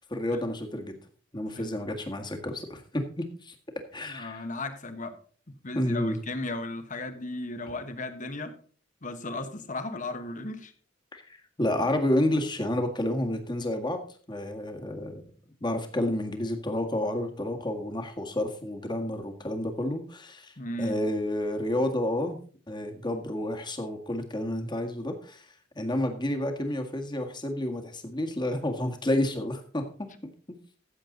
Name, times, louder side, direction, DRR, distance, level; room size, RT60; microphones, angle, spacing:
voice 1, 0.1-1.0 1.3-3.6 3.9-4.5 5.7-6.2 11.1-14.0 14.3-15.2 15.6-22.4 22.7-25.5 25.8-29.9, left 1 dB, 25° left, 4 dB, 1.8 m, -30 dB
voice 2, 4.0-5.2 5.6-8.5 9.0-10.7 20.6-21.0, left 2 dB, 40° left, 8 dB, 1.4 m, -35 dB
14.5 x 7.6 x 3.9 m, 0.43 s
head